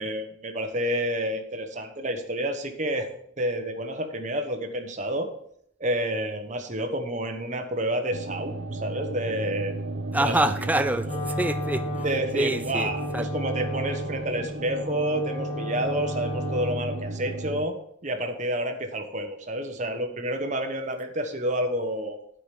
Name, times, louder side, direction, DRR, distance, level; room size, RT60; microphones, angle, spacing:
voice 1, 0.0-3.1 3.4-5.3 5.8-9.7 10.2-10.4 12.0-17.8 18.0-22.2, right 1 dB, 35° right, 5 dB, 1.1 m, -29 dB
sound 1, 8.1-17.7, right 2 dB, 60° right, 0.8 m, -34 dB
voice 2, 10.1-12.0 12.3-13.3, right 1 dB, 10° right, 10 dB, 0.4 m, -26 dB
Wind instrument woodwind instrument, 11.0-17.0, left 1 dB, 30° left, 1.2 m, -33 dB
8.6 x 5.1 x 7.5 m, 0.69 s
head